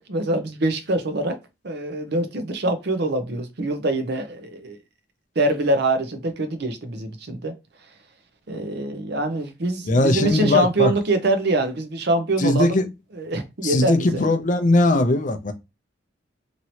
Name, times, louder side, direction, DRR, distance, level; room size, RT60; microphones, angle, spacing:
voice 1, 0.0-1.4 1.6-4.8 5.4-7.5 8.5-12.8 13.1-14.2, right 2 dB, 60° right, 0.7 m, -24 dB
voice 2, 9.9-10.9 12.4-12.9 13.6-15.5, left 2 dB, 40° left, 0.5 m, -19 dB
3.0 x 2.8 x 2.8 m
head